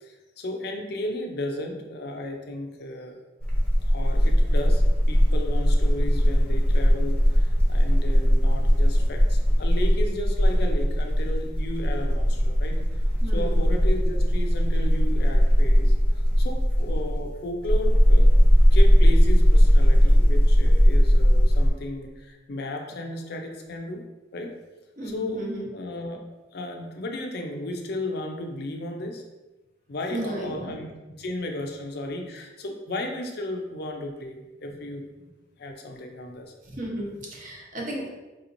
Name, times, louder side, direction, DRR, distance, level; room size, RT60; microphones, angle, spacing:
voice 1, 0.0-3.2 3.9-12.8 13.2-15.9 16.4-24.1 24.3-24.6 25.0-26.2 26.5-29.2 29.9-35.1 35.6-36.5, left 1 dB, 55° left, 3 dB, 0.5 m, -34 dB
sound 1, 3.4-21.7, equal, 5° left, 0.7 m, -19 dB
voice 2, 13.2-13.6 25.0-25.7 30.1-30.7 36.7-38.1, right 1 dB, 45° right, -2 dB, 0.9 m, -34 dB
4.7 x 2.9 x 2.6 m, 1.1 s
head